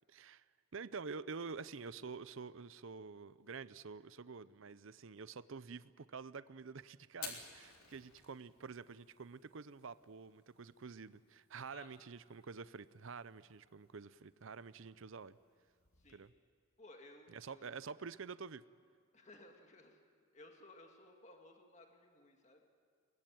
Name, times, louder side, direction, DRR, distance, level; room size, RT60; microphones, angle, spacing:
voice 1, 0.1-0.4 0.7-15.4 16.1-16.3 17.3-18.6, right 5 dB, 65° right, 16 dB, 0.6 m, -48 dB
Fire, 7.1-16.3, left 6 dB, 90° left, 3.7 m, -57 dB
voice 2, 16.8-17.8 19.1-20.0 20.3-22.6, left 2 dB, 30° left, 3 dB, 2.1 m, -59 dB
22.5 x 20.5 x 9.3 m, 2.1 s
head